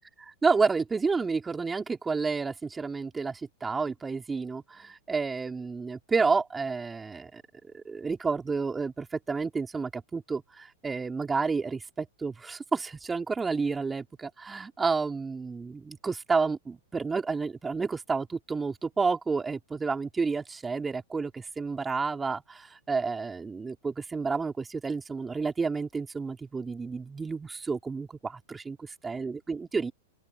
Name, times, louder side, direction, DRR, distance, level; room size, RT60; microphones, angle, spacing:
voice 1, 0.4-7.4 7.7-29.9, right 4 dB, 15° right, 3.1 m, -30 dB
open air
hypercardioid pair, 115°, 0 cm